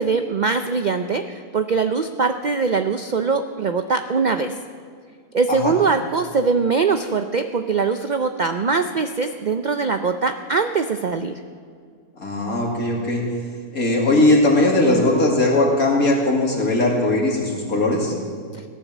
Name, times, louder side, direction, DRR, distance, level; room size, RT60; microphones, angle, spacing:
voice 1, 0.0-4.6 5.3-11.3, right 4 dB, 75° right, 8 dB, 0.4 m, -22 dB
voice 2, 12.2-13.3 13.7-18.1, left 2 dB, 70° left, -2 dB, 2.8 m, -19 dB
17.0 x 10.0 x 7.4 m, 2.1 s
omnidirectional pair, 1.6 m